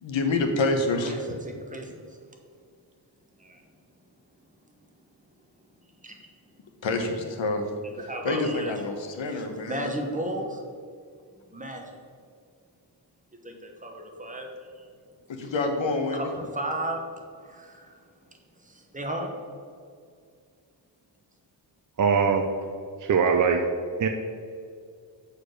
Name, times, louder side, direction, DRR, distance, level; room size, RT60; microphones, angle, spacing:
voice 1, 0.0-1.1 6.8-7.6 8.2-9.9 15.3-16.2, left 3 dB, 70° left, 5 dB, 1.2 m, -27 dB
voice 2, 0.9-2.2 3.4-3.6 6.0-6.3 7.8-8.7 9.2-10.6 11.5-12.0 13.4-14.5 14.7-14.9 16.1-17.0 17.4-18.1 18.6-19.3, right 1 dB, 15° right, 2 dB, 1.0 m, -35 dB
voice 3, 22.0-22.5 23.0-23.6 24.0-24.1, right 6 dB, 40° right, 4 dB, 0.5 m, -21 dB
6.7 x 5.0 x 6.3 m, 2.2 s
wide cardioid pair, 145°, 47 cm